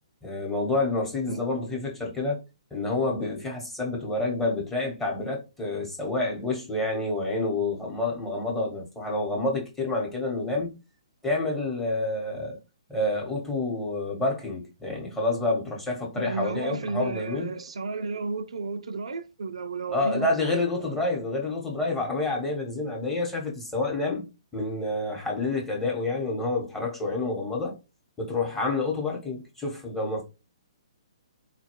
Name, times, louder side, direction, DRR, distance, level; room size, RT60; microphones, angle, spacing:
voice 1, 0.2-2.4 2.7-10.7 11.2-12.6 12.9-17.5 19.9-24.3 24.5-27.8 28.2-30.2, left 2 dB, 10° left, 1.0 m, -28 dB
voice 2, 16.2-20.9, right 3 dB, 75° right, 0.4 m, -33 dB
4.0 x 2.2 x 2.9 m
hypercardioid pair, 140°, 3 cm